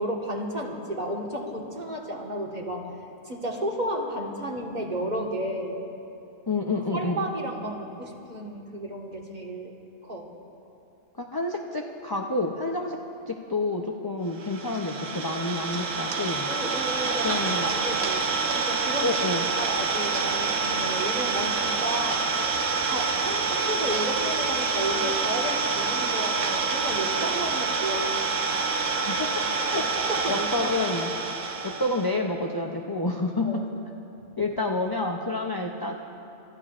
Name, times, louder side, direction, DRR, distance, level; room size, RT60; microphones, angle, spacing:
voice 1, 0.0-2.9 3.2-5.8 6.9-9.7 10.0-10.3 16.4-17.3 17.6-18.3 18.5-19.1 19.5-22.3 22.8-28.3 29.7-30.7 33.4-33.7, right 1 dB, 35° right, -1 dB, 1.7 m, -32 dB
voice 2, 6.5-7.2 11.2-13.0 13.3-16.5 17.2-17.7 19.0-19.5 29.0-29.4 29.7-29.8 30.3-31.1 31.6-33.7 34.4-35.9, left 2 dB, 30° left, 1 dB, 0.4 m, -28 dB
Idling, 14.4-32.1, right 4 dB, 80° right, 1.3 m, -27 dB
30.0 x 14.0 x 2.5 m, 2.8 s
omnidirectional pair, 1.3 m